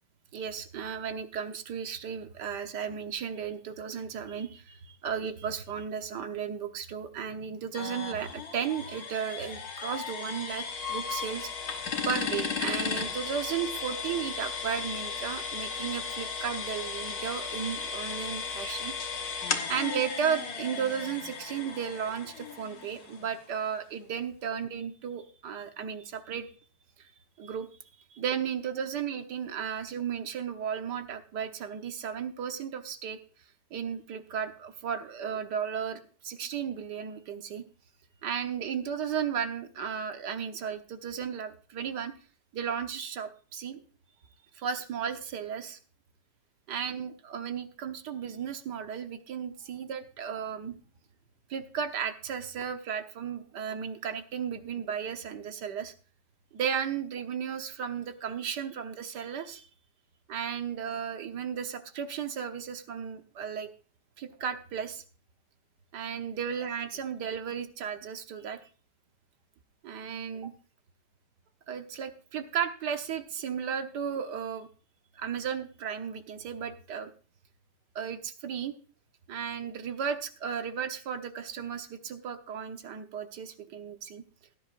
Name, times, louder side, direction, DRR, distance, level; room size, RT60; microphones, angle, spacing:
voice 1, 0.3-18.9 19.7-26.5 27.0-27.1 27.4-27.7 28.1-33.2 33.7-37.6 38.2-42.1 42.5-43.8 44.5-45.8 46.7-50.8 51.5-55.9 56.5-59.7 60.3-63.7 64.2-65.0 65.9-68.6 69.8-70.5 71.7-74.7 75.2-77.1 77.9-78.7 79.3-84.2, right 7 dB, 75° right, 7 dB, 1.7 m, -34 dB
sound 1, 7.7-23.4, left 6 dB, 60° left, 1.8 m, -35 dB
17.5 x 10.5 x 2.5 m, 0.38 s
omnidirectional pair, 1.9 m